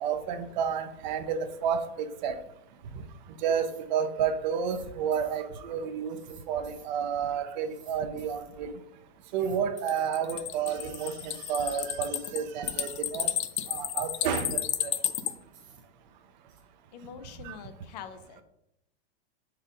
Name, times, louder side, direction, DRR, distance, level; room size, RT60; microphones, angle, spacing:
voice 1, 0.0-2.4 3.4-6.2 6.5-8.7 9.3-13.3 13.7-14.9 17.4-17.5, right 7 dB, 45° right, 10 dB, 0.6 m, -30 dB
sound 1, 3.7-3.8 4.5-4.9 5.1-5.4 6.1-6.9 7.6-8.5 9.3-10.1 10.8-11.5 12.0-12.9 13.5-14.3 15.0-15.8 16.5-16.6, right 7 dB, 25° right, 1.0 m, -55 dB
sound 2, 9.8-15.3, left 11 dB, 90° left, 0.6 m, -32 dB
voice 2, 16.9-18.4, left 7 dB, 40° left, 11 dB, 0.5 m, -44 dB
4.8 x 4.5 x 5.0 m, 0.83 s
supercardioid pair, 160°, 32 cm